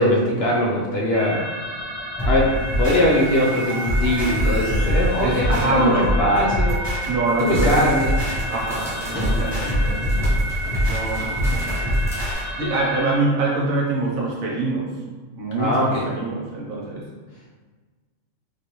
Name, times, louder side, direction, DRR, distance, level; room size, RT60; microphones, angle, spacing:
voice 1, 0.0-1.5 2.3-2.5 2.8-5.4 5.7-6.8 7.4-8.1 15.6-16.0, left 1 dB, 65° left, -4 dB, 0.7 m, -21 dB
sound 1, 1.1-13.2, right 2 dB, 55° right, 1.2 m, -31 dB
sound 2, 2.2-12.4, equal, 20° left, 1.3 m, -24 dB
voice 2, 5.2-6.1 7.1-7.9 8.5-10.2 10.8-11.7 12.6-14.9 15.4-17.1, right 2 dB, 85° right, -3 dB, 1.2 m, -24 dB
sound 3, 7.2-12.3, left 1 dB, 5° right, 0.4 m, -35 dB
3.2 x 2.6 x 2.9 m, 1.4 s
omnidirectional pair, 1.4 m